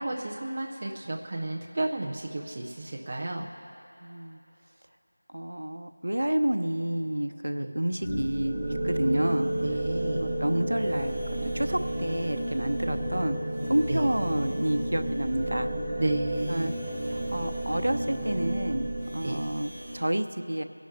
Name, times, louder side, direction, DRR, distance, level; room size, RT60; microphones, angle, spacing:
voice 1, 0.0-3.5 7.5-7.7 9.6-10.3 13.9-14.1 16.0-16.7 19.2-19.4, right 2 dB, 15° right, -1 dB, 0.4 m, -32 dB
voice 2, 4.0-4.4 5.3-8.6 8.8-9.5 10.1-11.2 11.5-13.4 13.7-15.7 16.5-16.7 17.1-20.6, right 1 dB, 55° right, 9 dB, 0.8 m, -29 dB
sound 1, 8.0-20.0, right 1 dB, 10° left, 1.0 m, -31 dB
27.5 x 11.0 x 3.5 m, 2.9 s
figure-of-eight pair, 180°, 0 cm